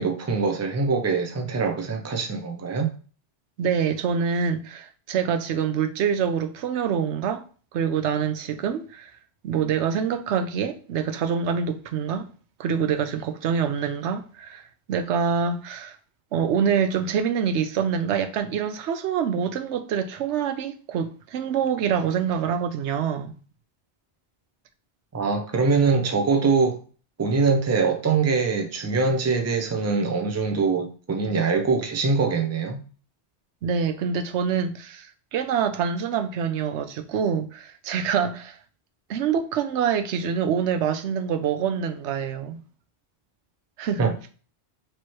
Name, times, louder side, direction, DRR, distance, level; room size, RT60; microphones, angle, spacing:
voice 1, 0.0-2.9 25.1-26.8 27.2-32.8 44.0-44.1, right 4 dB, 20° right, 0.5 m, -23 dB
voice 2, 3.6-7.4 7.7-9.1 9.4-12.3 12.6-15.9 16.3-23.3 33.6-38.6 39.1-42.6 43.8-44.1, right 7 dB, 85° right, 0.9 m, -26 dB
4.6 x 3.0 x 3.0 m
omnidirectional pair, 1.1 m